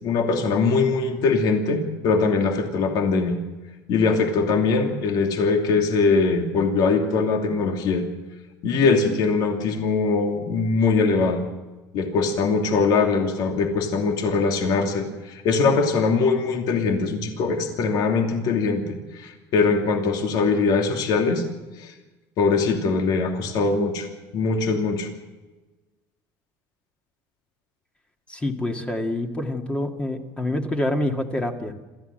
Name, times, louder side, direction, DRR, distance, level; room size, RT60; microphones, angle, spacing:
voice 1, 0.0-3.4 3.9-8.0 8.6-11.4 11.9-21.4 21.8-21.9 22.4-24.1 24.3-25.1, left 4 dB, 60° left, 3 dB, 2.9 m, -22 dB
voice 2, 28.3-31.7, left 1 dB, 15° left, 3 dB, 1.9 m, -26 dB
27.0 x 14.5 x 7.8 m, 1.2 s
cardioid pair, 140°, 8 cm